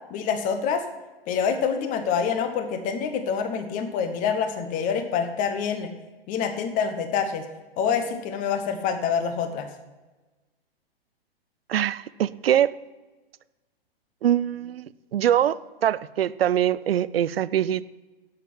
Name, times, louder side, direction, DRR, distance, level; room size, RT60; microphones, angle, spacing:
voice 1, 0.1-0.8 1.3-5.9 6.3-7.5 7.8-9.7, left 6 dB, 25° left, 8 dB, 1.0 m, -26 dB
voice 2, 11.7-12.8 14.2-17.8, right 10 dB, 70° right, 18 dB, 0.5 m, -23 dB
10.5 x 7.5 x 6.1 m, 1.2 s
hypercardioid pair, 120°, 30 cm